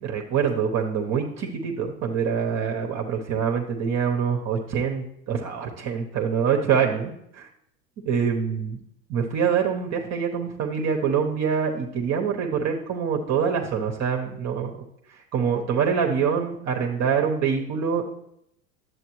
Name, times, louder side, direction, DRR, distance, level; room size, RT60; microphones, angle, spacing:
voice 1, 0.0-7.5 8.0-8.8 9.1-14.7 15.3-18.0, right 7 dB, 35° right, 2 dB, 1.0 m, -25 dB
10.5 x 8.0 x 3.1 m, 0.74 s
hypercardioid pair, 100°, 49 cm